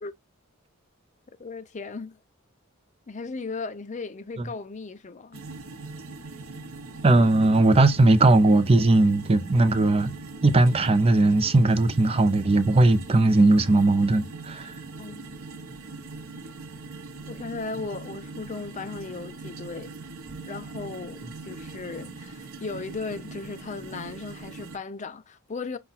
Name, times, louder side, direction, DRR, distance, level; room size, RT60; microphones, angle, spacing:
voice 1, 1.4-2.2 3.1-5.4 15.0-15.3 17.3-19.9 20.5-25.8, left 4 dB, 35° left, 0.5 m, -36 dB
sound 1, 5.3-24.8, right 3 dB, 85° right, 0.9 m, -41 dB
voice 2, 7.0-10.1 10.4-14.7, right 2 dB, 30° right, 0.5 m, -19 dB
5.8 x 2.3 x 3.9 m
head